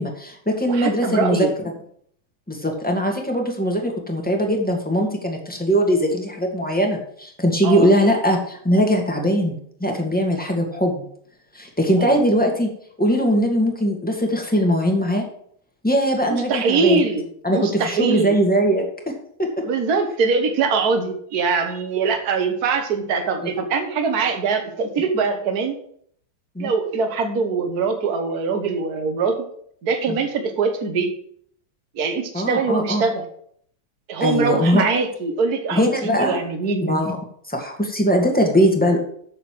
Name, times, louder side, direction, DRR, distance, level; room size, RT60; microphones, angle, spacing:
voice 1, 0.0-1.5 2.5-9.5 9.8-11.1 11.5-12.7 13.0-15.3 15.8-17.0 17.4-19.1 19.4-19.6 23.4-23.5 26.6-26.7 30.1-30.2 32.3-33.0 34.2-34.8 35.7-36.4 36.8-37.2 37.5-39.0, equal, 5° left, 1 dB, 1.7 m, -20 dB
voice 2, 0.7-1.5 7.6-7.9 12.0-12.2 16.2-18.4 19.6-25.8 26.6-29.4 29.8-31.1 32.0-33.3 34.1-36.9, right 4 dB, 50° right, 6 dB, 1.7 m, -23 dB
7.5 x 6.7 x 7.7 m, 0.64 s
omnidirectional pair, 2.3 m